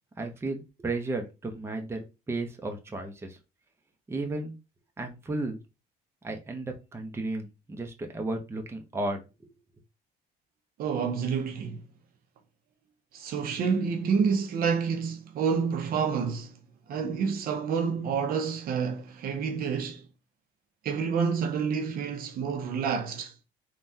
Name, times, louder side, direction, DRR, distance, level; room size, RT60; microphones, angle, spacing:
voice 1, 0.2-3.4 4.1-4.6 5.0-5.6 6.2-9.5, right 2 dB, 15° right, 0.6 m, -34 dB
voice 2, 10.8-11.8 13.1-16.6 16.9-20.1 20.8-23.3, right 6 dB, 60° right, 0.6 m, -28 dB
3.3 x 2.2 x 2.6 m
cardioid pair, 110°, 17 cm